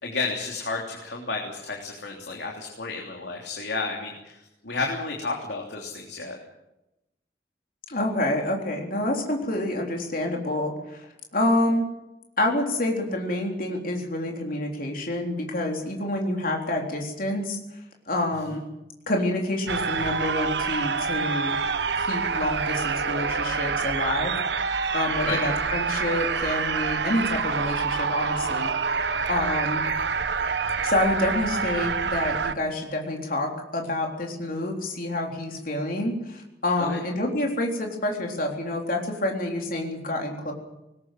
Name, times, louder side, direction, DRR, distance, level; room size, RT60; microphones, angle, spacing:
voice 1, 0.0-6.4 25.2-25.4 36.8-37.0, left 3 dB, 75° left, 0 dB, 3.3 m, -32 dB
voice 2, 7.9-11.1 11.3-11.9 12.4-17.6 18.1-18.6 19.1-21.6 22.1-24.3 24.9-28.7 29.3-29.9 30.8-40.5, left 1 dB, 50° left, 1 dB, 3.7 m, -27 dB
sound 1, 19.7-32.5, right 5 dB, 80° right, 1.1 m, -27 dB
20.5 x 19.5 x 7.6 m, 0.93 s
head